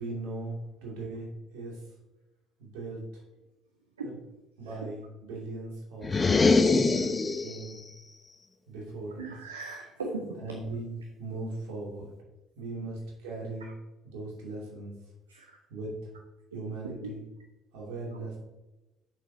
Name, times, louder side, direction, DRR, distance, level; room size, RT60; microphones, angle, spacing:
voice 1, 0.0-1.8 2.6-3.1 4.0-4.1 4.6-7.1 7.4-7.8 8.7-9.3 10.4-12.1 12.6-13.7 14.0-14.9 15.7-16.0 16.5-17.2 17.7-18.3, right 2 dB, 65° right, -3 dB, 2.6 m, -39 dB
sound 1, 6.0-7.7, left 3 dB, 25° left, 0.7 m, -23 dB
voice 2, 9.2-10.4 12.8-12.9 13.6-13.7 15.3-15.6 16.5-16.6 16.8-17.1 18.1-18.3, right 3 dB, 80° right, 3 dB, 0.6 m, -39 dB
8.4 x 6.5 x 2.8 m, 1.0 s
figure-of-eight pair, 50°, 0 cm